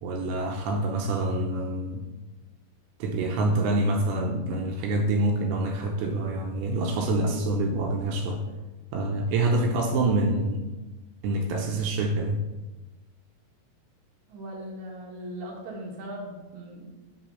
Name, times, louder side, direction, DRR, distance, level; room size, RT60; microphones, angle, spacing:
voice 1, 0.0-2.0 3.0-8.5 8.9-10.6 11.2-12.4, right 2 dB, 80° right, 2 dB, 2.8 m, -26 dB
voice 2, 14.3-16.9, right 1 dB, 60° right, -2 dB, 2.1 m, -39 dB
6.1 x 5.6 x 5.4 m, 1.1 s
omnidirectional pair, 5.4 m